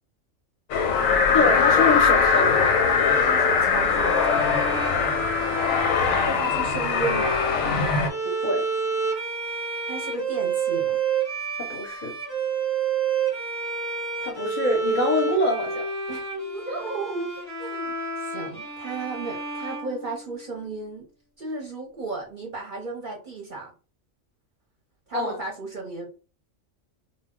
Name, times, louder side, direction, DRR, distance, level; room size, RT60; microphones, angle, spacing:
sound 1, 0.7-8.1, left 5 dB, 90° left, 1.0 m, -21 dB
voice 1, 1.3-2.8 8.2-8.6 11.6-12.1 14.2-15.9 25.1-25.4, left 2 dB, 45° left, -1 dB, 0.6 m, -25 dB
voice 2, 3.1-4.4 6.1-7.4 9.9-11.0 16.1-16.2 16.5-17.3 17.6-21.1 21.4-23.7 25.1-26.1, right 3 dB, 50° right, 0 dB, 0.7 m, -34 dB
sound 2, 3.8-20.6, right 5 dB, 15° right, 0.9 m, -30 dB
2.2 x 2.1 x 3.5 m, 0.34 s
omnidirectional pair, 1.4 m